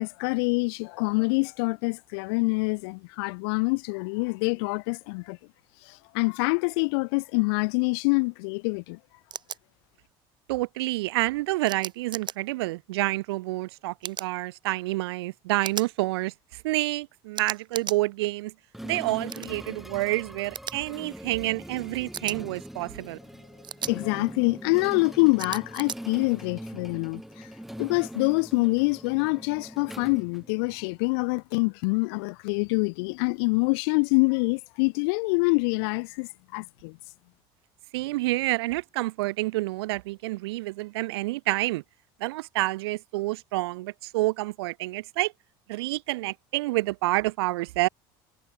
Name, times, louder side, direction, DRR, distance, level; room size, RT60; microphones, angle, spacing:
voice 1, 0.0-5.4 5.9-9.0 23.9-27.5 27.8-37.0, left 31 dB, 75° left, 0.6 m, -26 dB
sound 1, 9.3-9.6 11.7-12.4 14.0-14.3 15.6-15.9 17.3-18.0 19.3-19.5 20.5-20.7 22.1-22.4 23.6-23.9 25.4-26.0, right 8 dB, 35° right, 1.0 m, -35 dB
voice 2, 10.5-18.5 18.8-23.2 37.9-41.8 42.2-45.3 45.7-47.9, right 20 dB, 85° right, 1.6 m, -28 dB
sound 2, 18.7-31.0, equal, ahead, 1.7 m, -42 dB
supercardioid pair, 85°, 13 cm